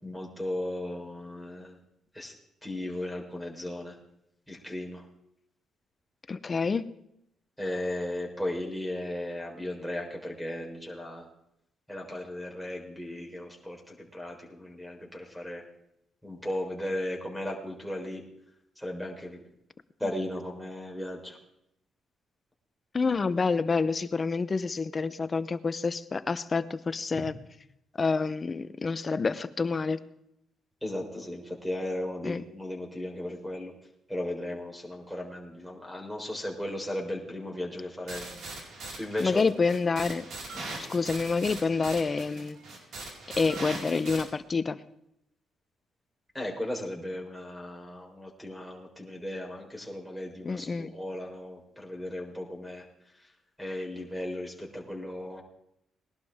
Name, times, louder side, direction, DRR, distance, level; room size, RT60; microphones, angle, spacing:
voice 1, 0.0-1.7 2.1-2.3 2.6-3.9 4.5-5.0 7.6-11.2 11.9-15.6 16.2-18.2 18.8-19.4 20.0-21.4 30.8-33.7 34.1-38.2 39.0-39.4 40.5-40.6 46.3-52.8 53.6-55.4, left 1 dB, ahead, 1 dB, 4.0 m, -36 dB
voice 2, 6.3-6.9 20.0-20.1 22.9-27.4 28.0-30.0 32.2-32.4 39.2-40.3 40.9-42.6 43.4-44.8 50.4-50.9, left 4 dB, 35° left, 14 dB, 0.7 m, -28 dB
sound 1, 38.1-44.2, right 2 dB, 65° right, 4.6 m, -41 dB
20.5 x 11.5 x 3.6 m, 0.79 s
cardioid pair, 90°, 0 cm